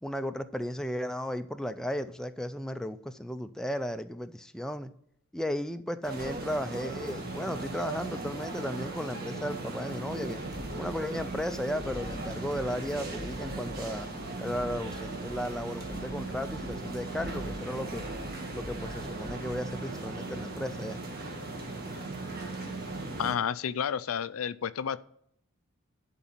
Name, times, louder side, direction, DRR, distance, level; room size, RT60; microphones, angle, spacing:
voice 1, 0.0-4.9 5.3-10.4 10.7-14.1 14.4-18.1 18.5-21.0, equal, 5° left, 8 dB, 0.4 m, -35 dB
sound 1, 6.0-23.3, right 2 dB, 45° right, 1.7 m, -38 dB
sound 2, 10.3-19.7, left 1 dB, 25° right, 2.1 m, -46 dB
voice 2, 23.2-25.0, left 8 dB, 80° left, 15 dB, 0.4 m, -31 dB
11.5 x 4.1 x 7.3 m, 0.72 s
head